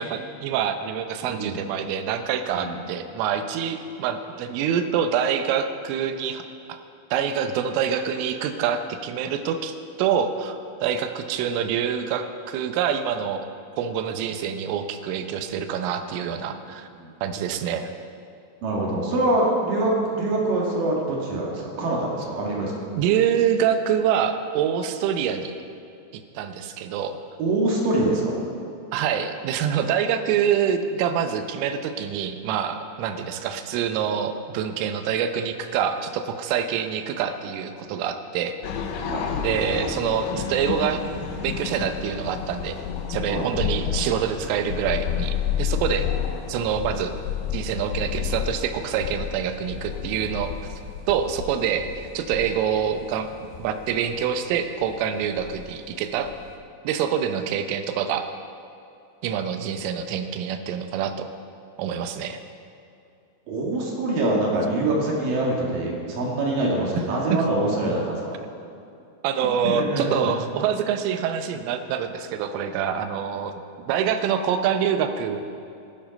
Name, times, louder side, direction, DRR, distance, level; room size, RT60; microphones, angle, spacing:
voice 1, 0.0-6.8 7.1-13.5 13.8-16.9 17.2-17.9 23.0-25.5 26.1-27.2 28.9-38.5 39.4-41.0 41.4-42.8 43.1-46.1 46.5-47.1 47.5-50.8 51.1-53.3 53.6-56.3 56.8-58.2 59.2-61.3 61.8-62.4 67.3-67.4 69.2-73.6 73.9-75.4, right 8 dB, 80° right, 8 dB, 3.2 m, -26 dB
voice 2, 1.3-1.6 2.5-2.8 16.5-16.6 17.0-17.1 18.6-22.7 27.4-28.4 39.0-39.3 43.3-43.4 63.5-68.4 69.6-70.3, right 2 dB, 55° right, -3 dB, 2.8 m, -24 dB
sound 1, 38.6-56.6, left 8 dB, 75° left, 3.0 m, -31 dB
16.0 x 11.0 x 5.2 m, 2.6 s
omnidirectional pair, 5.9 m